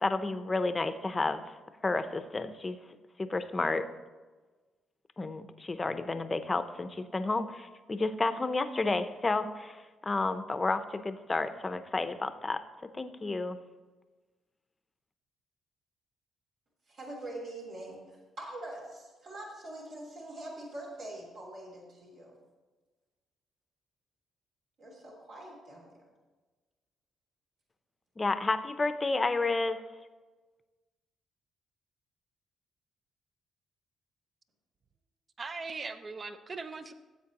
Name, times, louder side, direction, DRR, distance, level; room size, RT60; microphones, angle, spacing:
voice 1, 0.0-1.6 1.8-2.8 3.2-3.9 5.2-12.6 13.0-13.6 28.2-29.8, left 3 dB, 25° left, 10 dB, 0.7 m, -31 dB
voice 2, 16.9-22.4 24.8-26.1, right 1 dB, 65° right, -4 dB, 3.2 m, -44 dB
voice 3, 35.4-36.9, right 4 dB, 35° right, 10 dB, 0.6 m, -39 dB
15.0 x 8.0 x 3.0 m, 1.3 s
cardioid pair, 90°, 0 cm